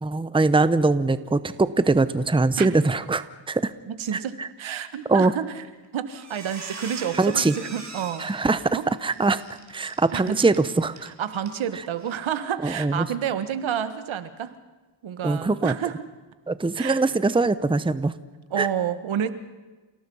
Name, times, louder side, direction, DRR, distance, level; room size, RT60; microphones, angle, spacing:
voice 1, 0.0-3.7 4.1-4.5 5.1-5.3 7.1-7.5 8.2-9.4 9.7-11.1 12.6-13.1 15.2-15.7 16.5-18.1 18.6-18.7, right 3 dB, 10° right, 14 dB, 0.9 m, -22 dB
voice 2, 3.9-5.5 5.9-8.9 10.1-10.4 11.2-14.5 15.0-16.0 16.8-17.0 18.5-19.3, right 9 dB, 70° right, 12 dB, 1.7 m, -29 dB
Squeak, 5.6-5.9 6.2-11.1 11.4-11.6 12.0-12.1, right 4 dB, 35° right, 4.4 m, -42 dB
28.5 x 18.0 x 5.6 m, 1.2 s
cardioid pair, 70°, 49 cm